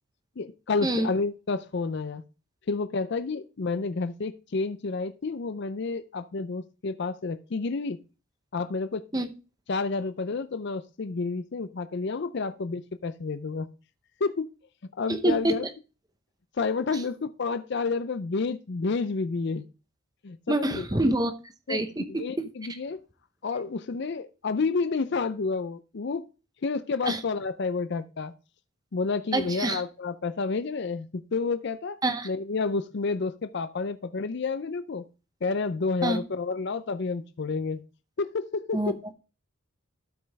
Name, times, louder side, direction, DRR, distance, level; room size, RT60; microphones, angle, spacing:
voice 1, 0.4-2.2 2.7-8.0 8.5-9.0 9.7-13.7 14.2-14.5 15.0-15.7 16.6-19.6 20.2-20.8 21.7-21.8 22.1-23.0 23.4-26.2 26.6-28.3 28.9-32.0 32.2-35.1 35.4-37.8 38.2-39.0, left 4 dB, 50° left, 13 dB, 0.5 m, -30 dB
voice 2, 15.1-15.6 16.9-17.0 20.5-21.3 21.7-22.5 27.1-27.2 29.3-29.8 32.0-32.3 36.0-36.2 38.7-38.9, right 2 dB, 15° right, 9 dB, 0.7 m, -26 dB
12.5 x 5.4 x 3.4 m, 0.32 s
head